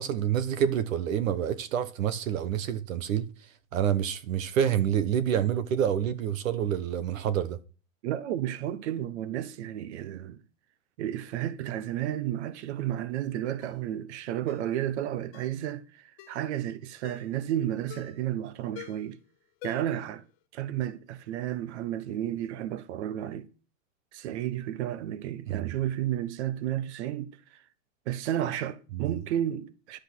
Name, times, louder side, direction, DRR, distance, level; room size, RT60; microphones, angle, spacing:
voice 1, 0.0-3.3 3.7-7.6 25.5-25.7 28.9-29.1, right 9 dB, 75° right, 1.3 m, -27 dB
voice 2, 8.0-10.4 11.0-19.2 19.6-20.2 20.5-23.5 24.1-27.6 28.1-30.0, right 11 dB, 55° right, 1.2 m, -32 dB
Ringtone, 13.6-13.8 14.5-14.7 15.3-15.6 16.2-16.5 17.0-17.3 17.9-18.3 18.7-19.1 19.6-20.1 20.4-20.5, left 14 dB, 35° left, 1.6 m, -46 dB
11.5 x 8.1 x 6.2 m
supercardioid pair, 165°, 40 cm